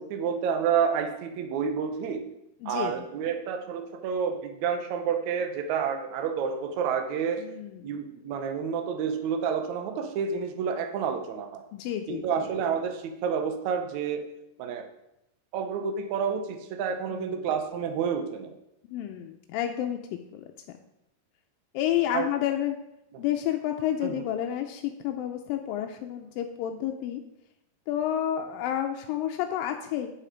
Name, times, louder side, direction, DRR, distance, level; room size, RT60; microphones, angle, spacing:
voice 1, 0.0-2.2 2.6-7.5 7.8-11.6 12.1-14.3 14.6-14.9 15.5-18.5 22.1-22.3 24.0-24.2, right 7 dB, 85° right, 6 dB, 1.6 m, -29 dB
voice 2, 2.6-3.0 7.4-8.0 11.7-12.5 17.1-17.5 18.9-20.5 21.7-22.8 23.2-27.2 27.9-30.1, left 11 dB, 80° left, 4 dB, 2.1 m, -30 dB
9.2 x 7.5 x 5.1 m, 0.84 s
omnidirectional pair, 4.6 m